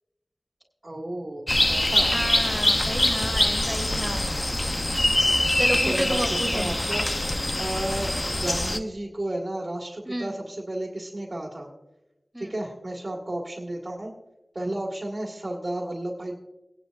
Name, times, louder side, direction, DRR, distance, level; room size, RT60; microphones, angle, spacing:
voice 1, 0.8-2.1 5.8-7.3 7.6-11.7 12.4-14.1 14.5-16.4, right 1 dB, 40° right, -3 dB, 1.9 m, -33 dB
sound 1, 1.5-8.8, left 1 dB, 30° left, 0.7 m, -24 dB
voice 2, 2.1-4.3 5.6-6.7 10.0-10.3 12.3-12.5, equal, 5° right, 4 dB, 2.3 m, -31 dB
19.5 x 10.0 x 2.5 m, 0.98 s
wide cardioid pair, 55°, 0 cm